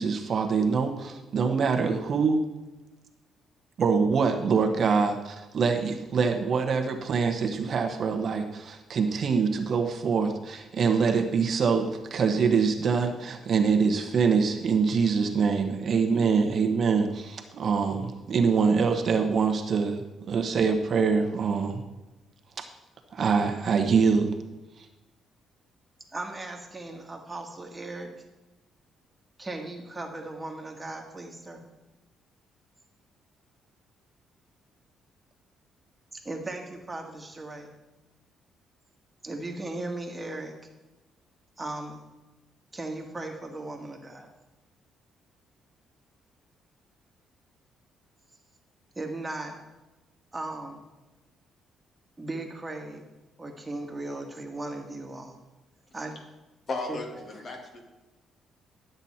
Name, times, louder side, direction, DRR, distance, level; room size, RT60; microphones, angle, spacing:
voice 1, 0.0-2.4 3.8-21.8 22.6-22.7 23.1-24.3 24.8-24.9, right 5 dB, 50° right, 5 dB, 1.1 m, -24 dB
voice 2, 26.1-28.1 29.4-31.6 36.2-37.7 39.2-40.5 41.6-42.0 42.7-44.3 49.0-49.6 50.3-50.8 52.2-53.1 53.4-55.4 55.9-56.1 56.9-57.0, right 2 dB, 15° right, 2 dB, 1.7 m, -37 dB
voice 3, 56.7-57.8, left 3 dB, 45° left, 2 dB, 2.3 m, -35 dB
12.0 x 7.9 x 4.3 m, 1.1 s
cardioid pair, 105°, 0 cm